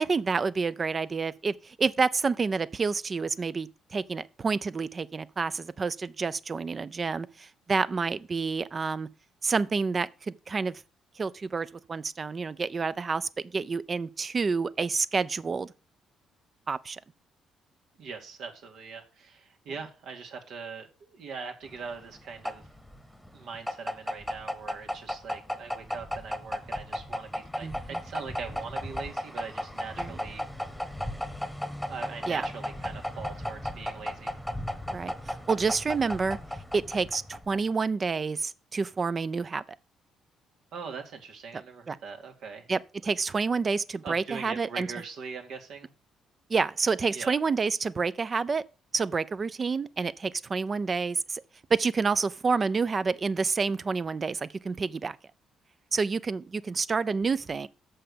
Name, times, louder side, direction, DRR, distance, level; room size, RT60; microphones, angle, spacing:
voice 1, 0.0-9.1 9.4-10.8 11.2-15.7 16.7-17.0 27.6-28.0 30.0-30.2 32.3-32.5 34.9-36.4 36.7-39.6 41.9-42.0 42.7-44.9 46.5-48.6 48.9-51.4 51.7-55.2 55.9-57.7, right 4 dB, 35° right, 0.5 m, -29 dB
voice 2, 18.0-22.6 23.3-30.5 31.9-34.4 40.7-42.6 44.0-45.9 47.1-47.3, right 5 dB, 75° right, 1.9 m, -41 dB
sound 1, 21.7-37.7, left 1 dB, ahead, 1.2 m, -35 dB
6.7 x 5.7 x 6.9 m
cardioid pair, 90°, 0 cm